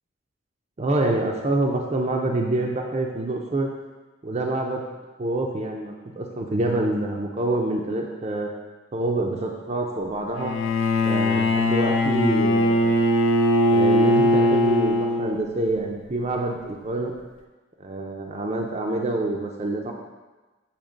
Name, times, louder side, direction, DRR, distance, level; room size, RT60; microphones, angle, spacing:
voice 1, 0.8-3.7 4.2-4.8 5.2-8.5 8.9-10.5 11.0-13.0 13.7-17.1 17.8-19.9, right 2 dB, 35° right, 1 dB, 0.5 m, -26 dB
Bowed string instrument, 10.4-15.6, left 1 dB, 75° left, 0.6 m, -20 dB
7.2 x 2.9 x 5.0 m, 1.2 s
head